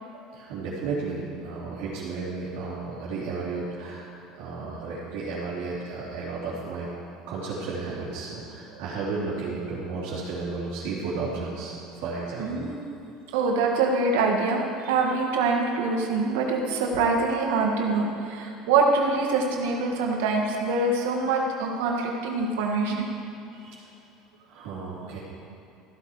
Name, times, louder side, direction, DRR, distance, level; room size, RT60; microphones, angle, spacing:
voice 1, 0.3-4.1 4.4-6.9 7.3-11.7 12.0-12.7 23.5-23.8 24.5-25.2, right 4 dB, 70° right, -9 dB, 2.9 m, -33 dB
voice 2, 12.4-12.8 13.3-14.6 14.8-23.1, right 3 dB, 90° right, 1 dB, 1.5 m, -24 dB
14.5 x 8.1 x 4.7 m, 2.7 s
supercardioid pair, 120°, 0 cm